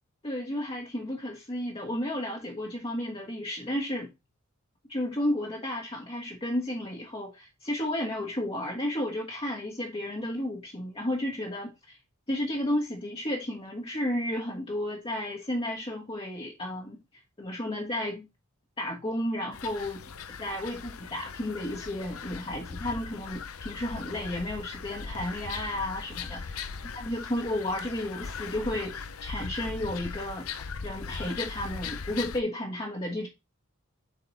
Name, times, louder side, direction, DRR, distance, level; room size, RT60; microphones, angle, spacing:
voice 1, 0.2-4.1 4.9-12.0 12.3-17.0 17.4-18.3 18.8-20.0 20.4-26.6 26.9-30.5 30.8-33.3, left 1 dB, 25° left, 1.5 m, -32 dB
sound 1, 19.5-32.4, left 5 dB, 75° left, 0.7 m, -39 dB
7.7 x 4.3 x 4.1 m
head